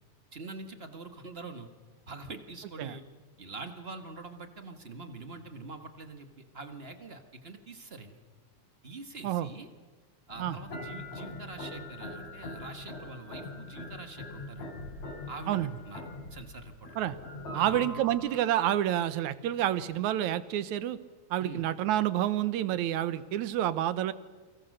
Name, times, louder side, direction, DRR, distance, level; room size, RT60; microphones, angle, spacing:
voice 1, 0.3-1.7 2.1-3.0 3.4-8.2 8.8-9.7 10.3-14.7 15.3-17.2 17.5-17.8 21.4-21.7, right 3 dB, 30° right, 7 dB, 1.2 m, -44 dB
sound 1, 10.3-18.4, left 2 dB, 65° left, 5.2 m, -42 dB
voice 2, 17.5-21.0 21.3-24.1, right 12 dB, 75° right, 15 dB, 2.3 m, -28 dB
29.0 x 24.0 x 6.6 m, 1.3 s
omnidirectional pair, 3.4 m